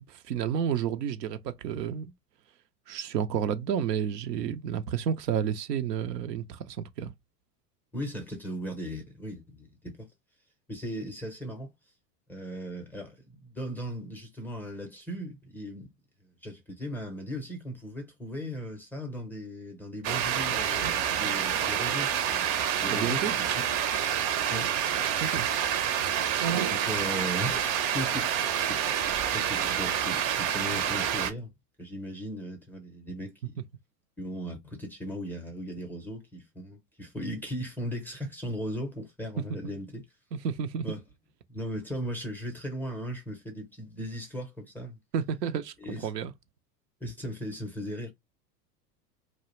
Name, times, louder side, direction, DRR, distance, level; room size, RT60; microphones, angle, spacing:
voice 1, 0.0-2.1 2.9-7.1 22.9-23.4 25.2-25.5 33.6-33.7 39.4-39.8 40.3-40.9 45.1-46.3, right 8 dB, 85° right, 0.5 m, -31 dB
voice 2, 7.9-10.1 10.7-11.7 12.3-15.9 16.4-22.5 22.8-23.3 23.6-23.7 24.5-24.7 26.7-28.9 29.3-31.5 31.8-33.6 34.2-40.0 40.8-41.0 41.5-45.0 45.8-46.1 47.0-48.1, equal, 5° left, 0.5 m, -37 dB
sound 1, 20.0-31.3, right 9 dB, 45° right, 0.5 m, -28 dB
2.4 x 2.0 x 2.9 m
hypercardioid pair, 95°, 48 cm